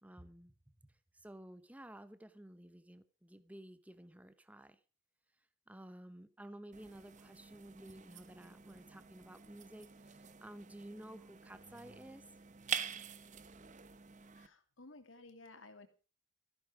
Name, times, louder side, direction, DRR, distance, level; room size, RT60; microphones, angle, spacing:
voice 1, 0.0-0.6 0.8-4.8 5.7-12.2, right 1 dB, 5° right, 0.8 m, -53 dB
sound 1, 6.7-14.5, right 7 dB, 40° right, 0.9 m, -46 dB
voice 2, 14.4-15.9, left 2 dB, 90° left, 2.7 m, -55 dB
14.5 x 12.0 x 4.9 m
head